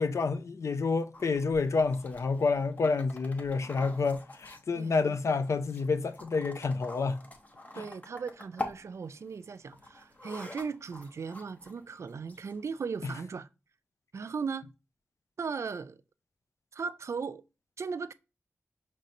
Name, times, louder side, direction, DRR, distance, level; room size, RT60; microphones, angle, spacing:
voice 1, 0.0-7.2 7.7-7.9 13.0-13.1, left 4 dB, 80° left, 0.4 m, -29 dB
sound 1, 1.1-12.8, left 2 dB, 30° left, 0.9 m, -46 dB
voice 2, 7.7-13.5 14.1-14.7 15.4-16.0 16.7-17.4 17.8-18.1, right 5 dB, 75° right, 0.3 m, -37 dB
5.2 x 3.2 x 2.7 m
wide cardioid pair, 70°, 5 cm